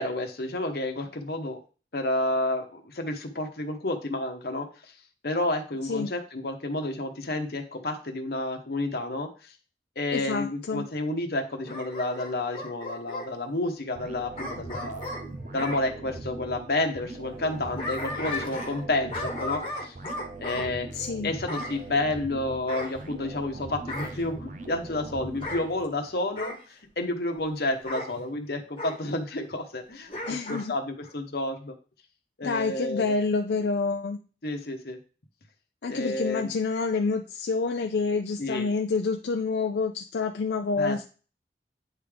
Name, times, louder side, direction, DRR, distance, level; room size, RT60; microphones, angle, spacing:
voice 1, 0.0-1.6 1.9-4.9 5.2-9.5 10.0-15.2 15.5-19.9 20.4-20.9 21.2-31.7 32.4-33.1 34.4-35.0 35.9-36.6 38.4-38.7 40.8-41.0, left 2 dB, 60° left, 4 dB, 1.0 m, -30 dB
voice 2, 10.1-10.8 20.9-21.3 30.3-30.7 32.4-34.2 35.8-41.0, left 4 dB, 75° left, 5 dB, 0.4 m, -28 dB
Bark / Growling, 11.7-13.3 14.4-15.8 17.4-18.8 19.1-20.7 21.5-21.8 22.7-23.5 23.9-24.2 25.3-25.6 26.4-26.6 27.9-28.1 28.8-29.0 30.1-30.7 31.0-31.1, left 2 dB, 30° left, 1.3 m, -35 dB
sound 1, 13.9-26.1, right 2 dB, 45° right, 0.6 m, -41 dB
9.2 x 3.6 x 3.4 m, 0.37 s
head